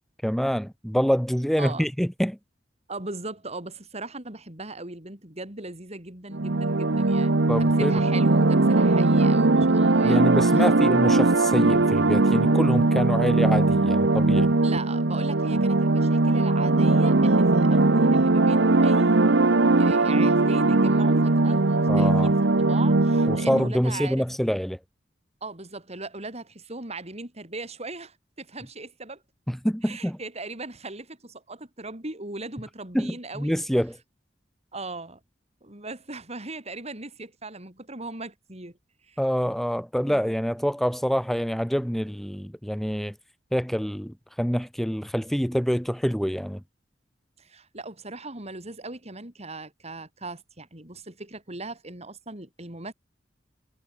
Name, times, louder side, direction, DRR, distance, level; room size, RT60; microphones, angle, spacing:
voice 1, 0.2-2.4 7.5-8.0 10.0-14.5 21.9-22.3 23.3-24.8 29.5-30.2 32.9-34.0 39.2-43.1 43.5-46.6, equal, ahead, 2.1 m, -26 dB
voice 2, 1.6-1.9 2.9-7.3 7.6-10.2 10.5-10.7 14.6-19.2 19.8-24.3 25.4-29.2 29.8-33.5 34.7-35.2 35.6-38.8 39.1-39.2 40.0-40.2 47.4-52.9, right 2 dB, 35° right, 5.7 m, -38 dB
sound 1, 6.3-23.7, right 2 dB, 75° right, 1.1 m, -20 dB
head